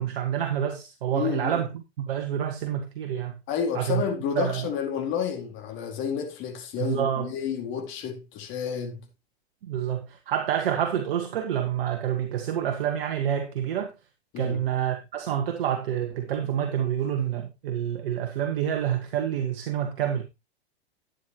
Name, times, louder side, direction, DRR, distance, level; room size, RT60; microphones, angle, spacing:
voice 1, 0.0-1.7 2.0-3.3 3.8-4.0 4.4-4.6 6.8-7.3 9.6-13.9 14.4-20.2, right 9 dB, 60° right, 1.8 m, -28 dB
voice 2, 1.1-1.7 3.5-9.0 14.3-14.6, left 7 dB, 40° left, 4.3 m, -30 dB
12.5 x 9.6 x 3.1 m
figure-of-eight pair, 100°, 32 cm